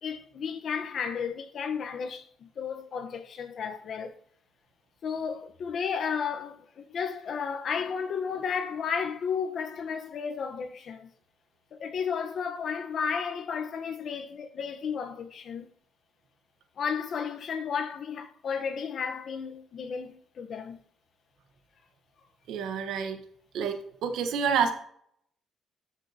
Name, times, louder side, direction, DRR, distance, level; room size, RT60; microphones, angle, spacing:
voice 1, 0.0-4.1 5.0-11.1 11.7-15.7 16.8-20.8, left 6 dB, 60° left, 1.1 m, -33 dB
voice 2, 22.5-23.2 23.5-24.7, right 6 dB, 85° right, 1.3 m, -28 dB
13.0 x 6.3 x 2.9 m
cardioid pair, 90°, 0 cm